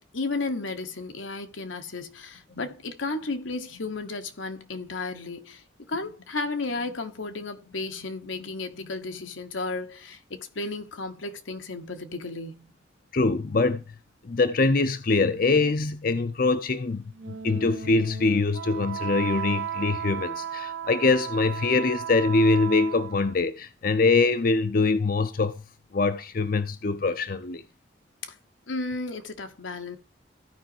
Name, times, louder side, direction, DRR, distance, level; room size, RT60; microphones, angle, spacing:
voice 1, 0.0-12.7 28.2-28.3 28.7-30.0, left 3 dB, 85° left, 1.2 m, -33 dB
voice 2, 13.1-13.8 14.2-25.6 25.9-27.6, left 3 dB, 45° left, 0.5 m, -23 dB
Wind instrument woodwind instrument, 17.1-23.4, right 8 dB, 70° right, 1.0 m, -35 dB
15.0 x 5.1 x 2.8 m
head